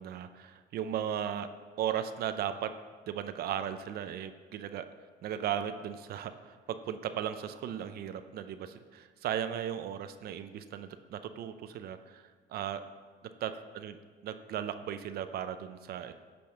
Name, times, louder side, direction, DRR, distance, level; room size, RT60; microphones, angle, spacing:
voice 1, 0.0-1.5 1.8-2.7 3.1-4.9 5.2-12.8 13.4-14.0 14.2-16.1, right 9 dB, 65° right, 10 dB, 0.6 m, -36 dB
10.5 x 5.3 x 6.4 m, 1.5 s
cardioid pair, 110°, 17 cm